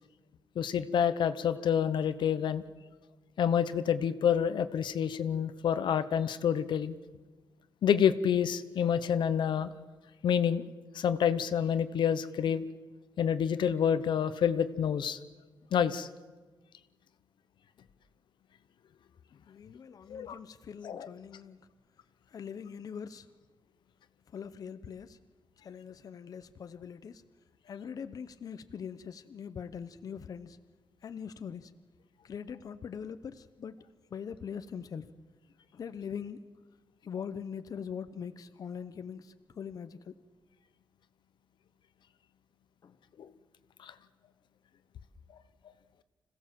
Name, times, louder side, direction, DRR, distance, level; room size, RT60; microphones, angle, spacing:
voice 1, 0.6-2.6 3.4-6.9 7.8-9.7 10.2-10.7 10.9-12.7 13.2-15.2 15.7-16.1 20.1-20.4 20.8-21.1 43.2-43.3 43.8-43.9, left 8 dB, 80° left, 12 dB, 0.9 m, -28 dB
voice 2, 19.5-21.6 22.3-23.3 24.3-25.2 25.6-27.2 27.7-30.6 31.0-31.7 32.2-33.7 34.1-35.0 35.7-36.4 37.0-40.1 42.8-43.0, left 7 dB, 50° left, 11 dB, 0.8 m, -42 dB
26.0 x 16.5 x 7.6 m, 1.3 s
wide cardioid pair, 170°, 8 cm